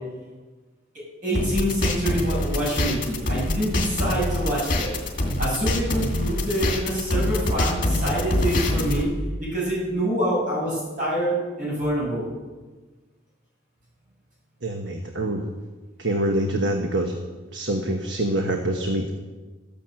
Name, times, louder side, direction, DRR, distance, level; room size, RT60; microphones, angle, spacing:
voice 1, 1.2-4.9 5.4-9.1 9.4-12.2, equal, 45° right, -6 dB, 6.4 m, -26 dB
sound 1, 1.3-9.0, left 1 dB, 50° left, 2.4 m, -25 dB
voice 2, 14.6-15.5 16.0-17.1 17.5-19.2, right 1 dB, 70° right, 3 dB, 1.3 m, -25 dB
14.5 x 10.5 x 7.6 m, 1.3 s
head